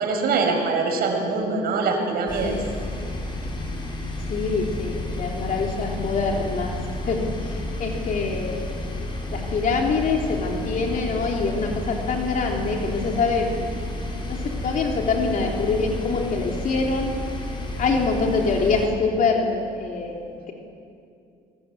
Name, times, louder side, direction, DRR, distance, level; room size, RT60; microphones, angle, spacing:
voice 1, 0.0-2.6, right 4 dB, 65° right, 3 dB, 5.3 m, -23 dB
sound 1, 2.3-18.9, left 1 dB, 30° left, 4.9 m, -31 dB
voice 2, 4.3-6.8 7.1-8.7 9.3-13.7 14.3-14.4 14.6-17.1 17.8-20.5, left 4 dB, 50° left, 0 dB, 3.4 m, -25 dB
26.5 x 20.5 x 8.1 m, 2.5 s
cardioid pair, 110°, 17 cm